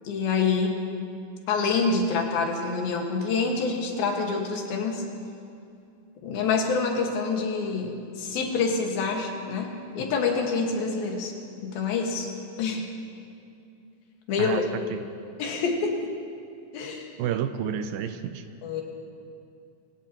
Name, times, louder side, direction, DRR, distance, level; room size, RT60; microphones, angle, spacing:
voice 1, 0.1-0.8 1.5-5.0 6.2-11.3 11.6-12.3 12.6-12.9 14.3-14.6 15.4-15.9 16.7-17.1 18.6-18.8, left 4 dB, 80° left, 1 dB, 3.5 m, -26 dB
voice 2, 17.2-18.4, right 9 dB, 80° right, 9 dB, 2.3 m, -30 dB
23.5 x 18.0 x 3.0 m, 2.6 s
omnidirectional pair, 4.2 m